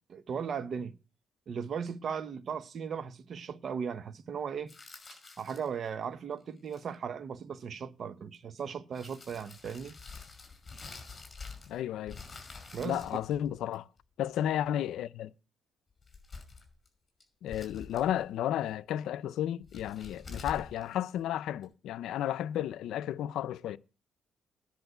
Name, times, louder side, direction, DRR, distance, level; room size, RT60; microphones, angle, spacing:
voice 1, 0.1-0.9 1.5-4.7 5.4-10.0 12.7-13.0, right 6 dB, 55° right, 1.1 m, -37 dB
sound 1, 4.7-5.9 6.6-7.0 8.3-8.4 8.9-11.8 12.1-14.0 15.9-16.9 17.2-18.3 19.6-21.6, left 4 dB, 30° left, 5.5 m, -47 dB
voice 2, 11.7-12.2 12.8-13.9 14.2-15.3 17.4-23.8, left 11 dB, 80° left, 0.5 m, -33 dB
10.5 x 6.2 x 8.1 m
cardioid pair, 90°, 0 cm